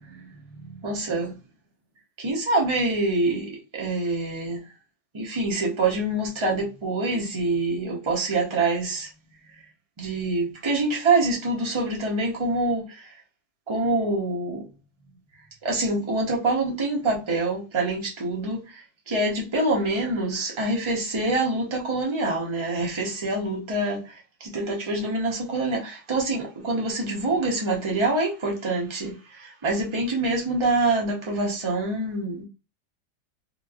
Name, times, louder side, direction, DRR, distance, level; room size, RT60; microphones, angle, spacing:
voice 1, 0.0-0.4 0.8-1.3 2.2-4.6 5.1-9.1 10.0-13.1 13.7-14.7 15.6-32.4, right 2 dB, 35° right, 0.4 m, -26 dB
3.2 x 3.0 x 2.4 m
omnidirectional pair, 1.9 m